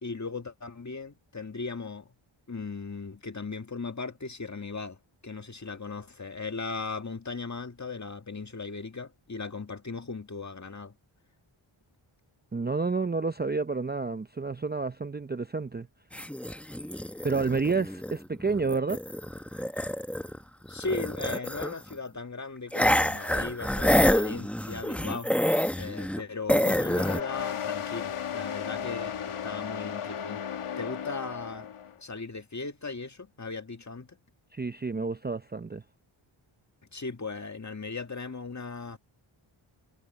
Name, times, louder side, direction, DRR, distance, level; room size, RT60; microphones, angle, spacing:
voice 1, 0.0-2.1 2.5-10.9 20.7-25.3 25.8-30.4 30.8-31.7 32.0-34.2 36.9-39.0, left 4 dB, 35° left, 2.1 m, -37 dB
voice 2, 12.5-15.9 17.2-19.0 34.5-35.8, right 4 dB, 20° right, 0.6 m, -29 dB
sound 1, 16.1-20.4 20.7-21.9 22.7-26.2 26.5-27.2, equal, 5° left, 1.0 m, -27 dB
sound 2, 26.8-31.9, left 8 dB, 80° left, 2.0 m, -35 dB
cardioid pair, 65°, 50 cm